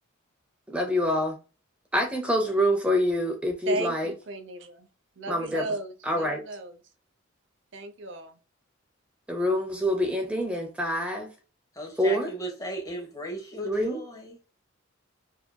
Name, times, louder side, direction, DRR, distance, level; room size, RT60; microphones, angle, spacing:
voice 1, 0.7-1.4 1.9-4.1 5.3-5.6 6.1-6.4 9.3-11.3 12.0-12.3 13.6-14.0, equal, 5° right, 0.5 m, -26 dB
voice 2, 3.7-4.9 5.2-6.8 7.7-8.4, right 2 dB, 60° right, 0.6 m, -35 dB
voice 3, 11.7-14.4, equal, 15° left, 1.1 m, -36 dB
4.6 x 2.8 x 2.2 m
head